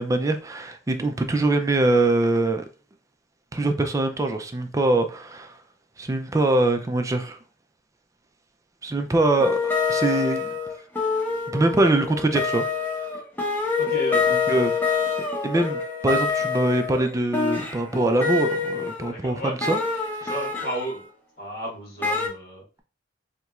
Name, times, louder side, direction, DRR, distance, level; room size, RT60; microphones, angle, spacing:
voice 1, 0.0-2.6 3.5-5.5 6.0-7.4 8.8-10.5 11.5-12.6 14.3-15.0 15.4-19.8 20.2-20.3, right 2 dB, 15° right, 0.4 m, -23 dB
sound 1, 9.1-19.1 19.6-21.0 22.0-22.3, left 4 dB, 10° left, 0.8 m, -26 dB
voice 2, 13.8-14.2 19.1-19.5 20.2-21.0 21.4-22.6, right 1 dB, 50° left, 1.3 m, -32 dB
4.2 x 2.9 x 2.3 m
head